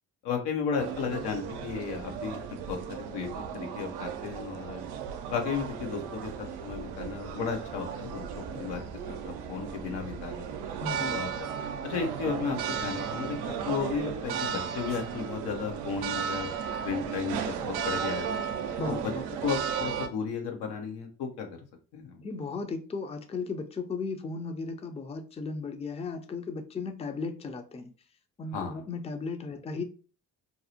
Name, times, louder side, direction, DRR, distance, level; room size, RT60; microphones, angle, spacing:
voice 1, 0.2-4.8 5.3-10.5 11.1-11.5 11.8-16.5 16.8-18.3 18.9-19.0 19.4-21.5 21.9-22.2 28.5-28.8, left 6 dB, 90° left, 0.7 m, -34 dB
sound 1, 0.8-20.1, right 7 dB, 80° right, 0.5 m, -35 dB
voice 2, 10.8-11.2 18.8-19.2 22.2-27.9 28.4-29.8, left 4 dB, 15° left, 0.4 m, -35 dB
2.6 x 2.0 x 2.8 m
supercardioid pair, 55°, 39 cm